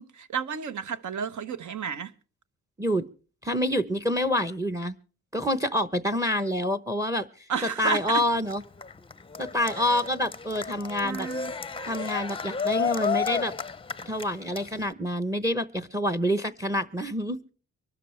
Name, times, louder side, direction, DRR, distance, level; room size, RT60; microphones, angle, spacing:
voice 1, 0.0-2.1 7.5-8.2 9.7-9.9 11.0-11.5, right 6 dB, 65° right, 1.2 m, -32 dB
voice 2, 3.4-4.9 5.3-7.5 7.8-8.6 9.4-11.3 11.9-13.5 14.1-17.4, equal, 10° right, 0.8 m, -27 dB
Cheering, 7.9-14.9, left 6 dB, 15° left, 0.6 m, -32 dB
24.5 x 13.0 x 3.2 m
cardioid pair, 125°, 32 cm